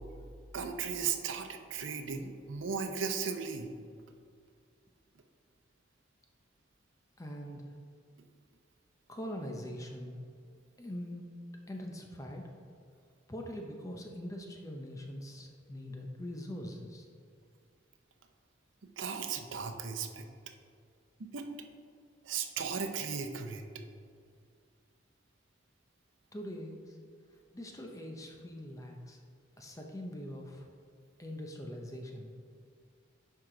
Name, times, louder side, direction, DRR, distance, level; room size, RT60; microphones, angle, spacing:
voice 1, 0.5-3.7 19.0-20.2 21.2-21.5 22.2-23.6, right 6 dB, 75° right, 6 dB, 0.7 m, -36 dB
voice 2, 7.2-7.7 9.1-10.2 10.8-11.3 11.7-12.4 13.3-17.1 26.3-27.0 27.5-29.2 29.6-30.7 31.2-32.3, equal, 15° left, 2 dB, 0.6 m, -42 dB
10.5 x 4.7 x 3.8 m, 2.2 s
head